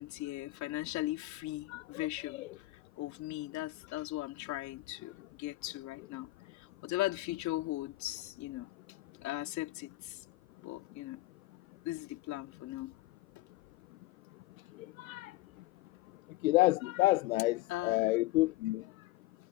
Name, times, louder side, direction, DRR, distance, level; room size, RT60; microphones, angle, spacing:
voice 1, 0.0-2.5 3.0-8.7 9.2-10.2 10.6-11.2 11.8-12.9 14.7-14.9 17.7-18.1, left 17 dB, 40° left, 3.7 m, -38 dB
voice 2, 15.0-15.3 16.4-18.8, left 19 dB, 65° left, 0.9 m, -28 dB
hypercardioid pair, 115°, 44 cm